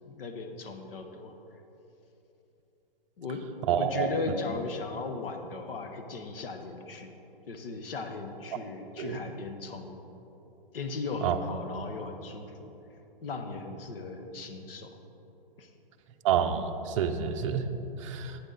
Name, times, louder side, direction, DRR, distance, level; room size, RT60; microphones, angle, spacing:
voice 1, 0.0-1.4 3.2-3.4 3.7-7.1 7.5-10.1 10.7-12.8 13.2-15.0 15.6-15.7 17.7-17.8, left 4 dB, 70° left, 5 dB, 1.3 m, -37 dB
voice 2, 3.7-4.1 9.0-9.2 11.2-11.4 16.2-17.6 18.0-18.4, right 8 dB, 35° right, 5 dB, 0.6 m, -28 dB
12.0 x 9.2 x 4.0 m, 3.0 s
hypercardioid pair, 150°, 30 cm